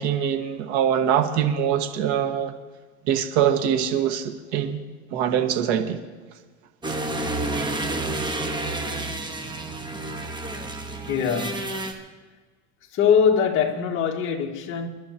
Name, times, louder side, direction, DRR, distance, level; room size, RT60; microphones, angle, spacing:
voice 1, 0.0-2.5 3.1-4.8 5.1-6.0 6.8-6.9, right 9 dB, 65° right, 1.7 m, -23 dB
sound 1, 6.8-11.9, right 2 dB, 15° right, 1.2 m, -30 dB
voice 2, 11.1-11.8 12.9-14.9, left 7 dB, 35° left, 1.8 m, -22 dB
28.5 x 11.5 x 2.9 m
supercardioid pair, 155°, 35 cm